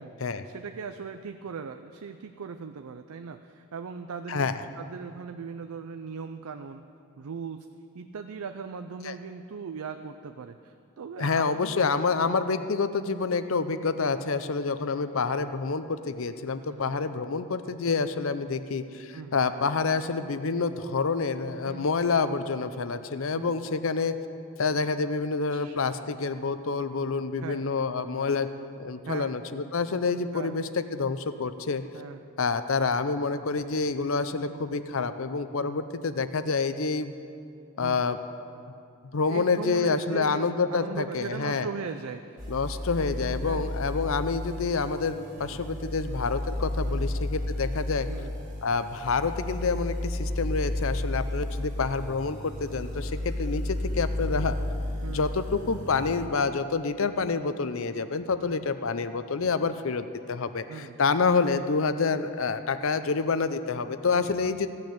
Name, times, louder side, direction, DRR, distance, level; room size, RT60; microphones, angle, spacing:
voice 1, 0.4-6.8 7.2-7.7 7.9-11.8 16.7-16.9 19.1-19.4 21.6-21.9 23.3-23.6 25.5-25.8 27.4-27.6 29.1-29.3 30.3-30.5 31.9-32.2 34.4-34.6 35.6-35.8 37.8-38.0 39.2-42.4 42.9-43.1 43.4-43.7 45.4-45.6 46.9-47.1 48.1-48.3 54.2-54.4 55.0-55.3 58.4-58.6 60.7-61.0 64.1-64.3, right 5 dB, 85° right, 7 dB, 0.5 m, -39 dB
voice 2, 11.2-24.1 24.6-28.5 28.8-31.8 32.4-37.1 37.8-38.2 39.1-41.7 42.5-48.1 48.6-54.6 55.1-64.7, left 4 dB, 70° left, 11 dB, 0.6 m, -28 dB
sound 1, 42.4-56.3, left 1 dB, 35° right, 2.0 m, -33 dB
16.0 x 6.5 x 8.5 m, 2.6 s
head